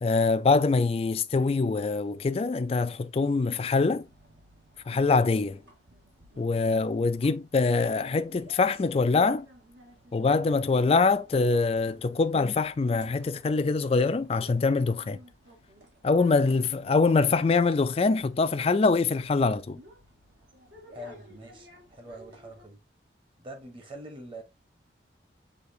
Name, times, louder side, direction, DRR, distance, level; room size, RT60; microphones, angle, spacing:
voice 1, 0.0-4.1 4.9-5.6 6.4-9.5 10.1-15.2 16.0-19.8, left 4 dB, 30° left, 0.3 m, -24 dB
sound 1, 4.0-22.6, equal, 75° right, 1.6 m, -55 dB
voice 2, 6.6-6.9 10.3-10.7 16.3-16.6 20.9-22.8 23.4-24.4, right 1 dB, 30° right, 1.1 m, -43 dB
6.4 x 2.9 x 2.7 m
head